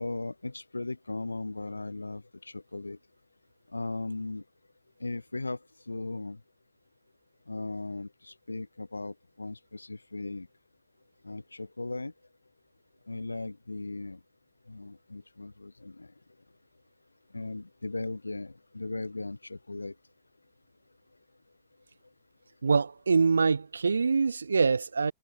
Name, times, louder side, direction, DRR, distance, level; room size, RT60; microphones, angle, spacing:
voice 1, 0.0-3.0 3.7-4.4 5.0-5.6 5.9-6.4 7.5-10.5 11.2-12.1 13.1-14.2 14.7-16.1 17.3-19.9, left 2 dB, 80° left, 6.8 m, -37 dB
voice 2, 22.6-25.1, right 5 dB, 75° right, 2.9 m, -24 dB
figure-of-eight pair, 90°, 0 cm